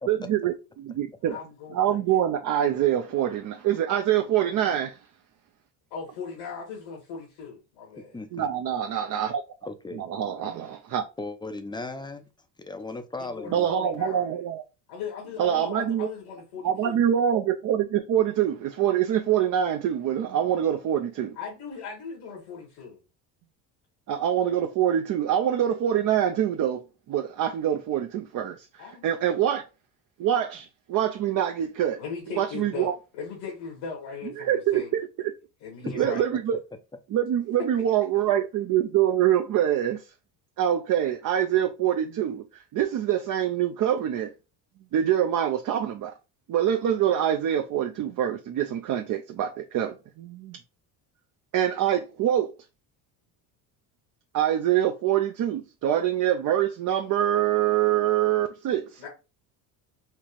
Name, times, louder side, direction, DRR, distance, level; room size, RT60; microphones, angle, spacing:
voice 1, 0.0-1.4 1.7-5.0 8.3-9.4 9.9-11.0 13.5-14.6 15.4-16.1 16.6-21.4 24.1-26.8 27.1-29.6 30.2-32.0 32.3-33.0 34.2-35.0 35.9-36.6 37.1-40.0 40.6-44.3 44.9-46.1 46.5-50.6 51.5-52.5 54.3-59.0, right 10 dB, 45° right, 0.5 m, -25 dB
voice 2, 1.3-2.0 5.9-8.1 13.2-14.3 14.9-17.1 21.3-23.0 28.8-29.2 32.0-34.9 35.6-36.3 59.0-59.1, left 5 dB, 90° left, 1.8 m, -38 dB
voice 3, 8.1-8.5 9.6-10.1 11.2-12.3 12.6-13.7 35.8-36.1, left 2 dB, 10° left, 0.4 m, -36 dB
4.4 x 2.4 x 3.1 m
supercardioid pair, 85°, 45 cm